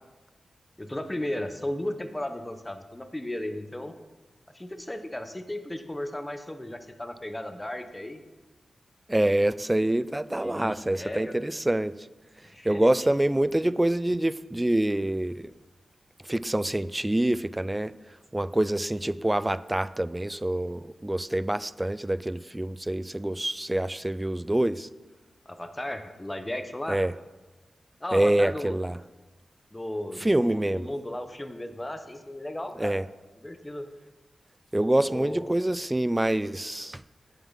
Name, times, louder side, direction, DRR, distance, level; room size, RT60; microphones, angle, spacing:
voice 1, 0.8-3.9 4.5-8.2 10.4-11.3 12.5-12.9 25.5-27.0 28.0-28.8 29.7-33.0 33.4-33.9 35.1-35.4, left 1 dB, 15° left, 8 dB, 0.9 m, -35 dB
voice 2, 9.1-11.9 12.6-15.5 16.3-17.9 18.3-24.9 26.9-27.1 28.1-29.0 30.2-30.9 32.8-33.0 34.7-37.0, right 1 dB, 10° right, 16 dB, 0.3 m, -26 dB
9.3 x 7.3 x 5.6 m, 1.2 s
wide cardioid pair, 110°, 0 cm